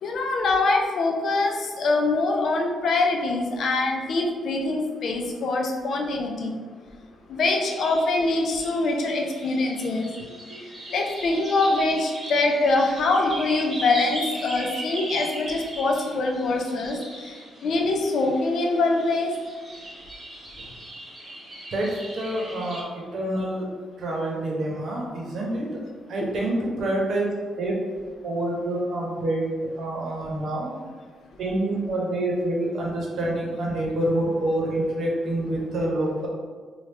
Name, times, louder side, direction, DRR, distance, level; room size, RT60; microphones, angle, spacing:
voice 1, 0.0-6.6 7.3-10.1 10.9-19.3, left 2 dB, 60° left, 1 dB, 0.5 m, -24 dB
sound 1, 7.4-22.8, right 1 dB, 30° right, 1.1 m, -39 dB
voice 2, 21.7-23.7 24.0-25.7 26.1-27.3 27.6-27.8 28.2-29.4 29.8-30.7 31.4-36.3, right 1 dB, 60° right, -2 dB, 0.8 m, -27 dB
3.3 x 2.3 x 3.2 m, 1.5 s
cardioid pair, 120°, 0 cm